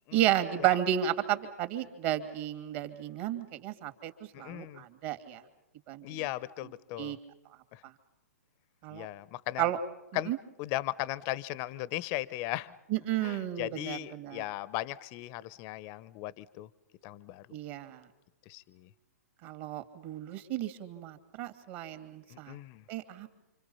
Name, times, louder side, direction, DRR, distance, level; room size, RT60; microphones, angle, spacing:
voice 1, 0.1-4.1 4.4-5.4 5.9-6.2 7.0-7.2 8.8-9.1 9.6-9.8 10.3-10.4 12.9-14.4 17.5-18.0 19.4-22.6 22.9-23.3, right 12 dB, 40° right, 9 dB, 2.7 m, -32 dB
voice 2, 4.3-4.8 6.0-7.2 7.7-7.8 8.9-9.7 10.1-10.3 10.6-12.7 13.2-16.7 17.0-17.5 18.5-18.9 22.3-22.8, left 16 dB, 35° left, 19 dB, 0.9 m, -37 dB
29.0 x 26.0 x 5.7 m, 0.94 s
hypercardioid pair, 125°, 9 cm